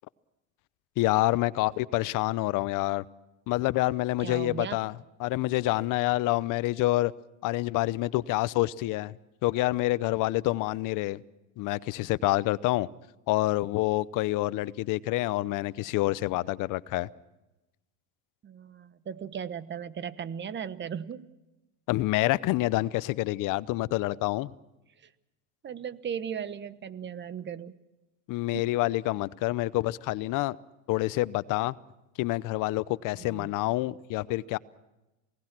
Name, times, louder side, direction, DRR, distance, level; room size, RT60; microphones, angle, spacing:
voice 1, 1.0-3.0 3.5-7.1 7.4-9.2 9.4-11.2 11.6-12.9 13.3-17.1 21.9-24.5 28.3-30.6 30.9-31.7 32.2-34.6, left 18 dB, 55° left, 19 dB, 0.8 m, -27 dB
voice 2, 4.2-4.8 18.4-21.3 25.6-27.7 28.5-28.6 33.2-33.5, right 8 dB, 30° right, 15 dB, 1.2 m, -37 dB
28.0 x 19.0 x 6.1 m, 0.99 s
supercardioid pair, 115°, 37 cm